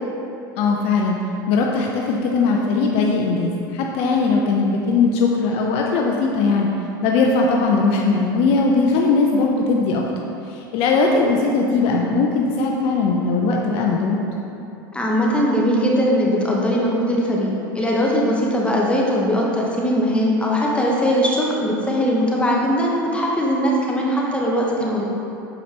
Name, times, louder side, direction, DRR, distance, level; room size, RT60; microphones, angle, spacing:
voice 1, 0.6-1.2 1.5-6.7 7.0-10.0 10.5-14.2, left 4 dB, 55° left, 0 dB, 0.6 m, -19 dB
voice 2, 14.9-25.0, equal, 10° left, -3 dB, 1.0 m, -20 dB
6.7 x 5.0 x 2.9 m, 2.7 s
hypercardioid pair, 90°, 12 cm